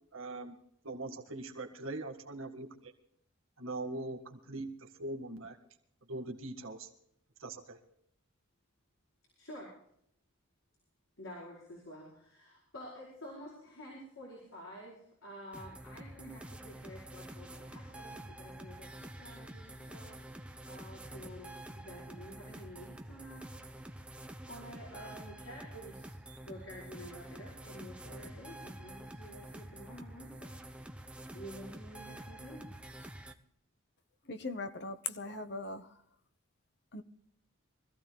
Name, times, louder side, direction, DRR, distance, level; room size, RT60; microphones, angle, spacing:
voice 1, 0.1-0.6 0.8-2.9 3.6-5.6 6.1-6.9 7.4-7.8, right 2 dB, 80° right, 1.8 m, -41 dB
voice 2, 9.4-9.7 11.2-23.5 24.5-26.2 26.4-30.6 31.3-32.7, equal, 75° left, 5.2 m, -50 dB
sound 1, 15.5-33.3, right 1 dB, 5° right, 0.8 m, -48 dB
voice 3, 34.3-35.9 36.9-37.0, left 3 dB, 55° left, 1.0 m, -39 dB
24.5 x 15.0 x 2.3 m
head